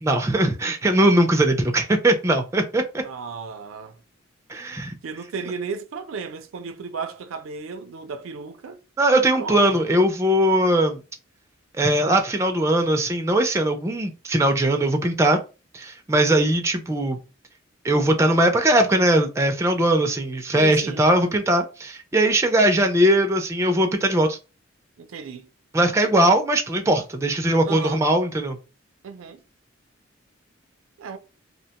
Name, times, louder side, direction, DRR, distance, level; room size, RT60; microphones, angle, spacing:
voice 1, 0.0-2.8 4.5-4.9 9.0-11.0 11.8-15.4 15.7-17.2 17.8-24.4 25.7-28.6, right 1 dB, 15° right, 0.3 m, -20 dB
voice 2, 3.0-4.0 5.0-8.8 9.4-9.8 20.5-21.0 25.0-25.5 27.6-28.0 29.0-29.4 31.0-31.2, right 5 dB, 85° right, 0.4 m, -34 dB
2.8 x 2.1 x 2.8 m
head